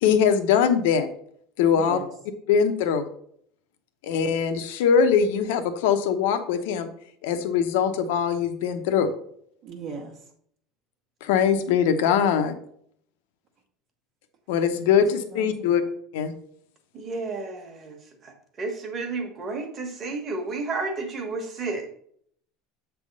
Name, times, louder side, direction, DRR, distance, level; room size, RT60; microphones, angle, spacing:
voice 1, 0.0-1.1 1.6-2.0 2.5-3.0 4.0-6.9 7.2-9.1 11.2-12.5 14.5-15.8 16.1-16.3, left 7 dB, 75° left, 8 dB, 0.9 m, -22 dB
voice 2, 1.8-2.1 9.6-10.2 14.7-14.9 15.3-15.9, right 5 dB, 50° right, -1 dB, 1.0 m, -38 dB
voice 3, 16.9-21.9, right 3 dB, 25° right, 3 dB, 1.2 m, -32 dB
7.6 x 3.5 x 5.3 m, 0.65 s
cardioid pair, 170°, 0 cm